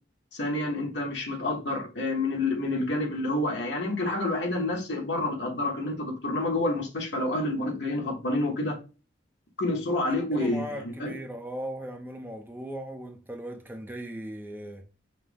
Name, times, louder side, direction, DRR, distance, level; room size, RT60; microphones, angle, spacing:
voice 1, 0.3-8.8 9.6-11.2, left 2 dB, 70° left, 1.1 m, -28 dB
voice 2, 10.3-14.8, right 1 dB, 10° right, 0.5 m, -38 dB
5.7 x 2.1 x 3.3 m
head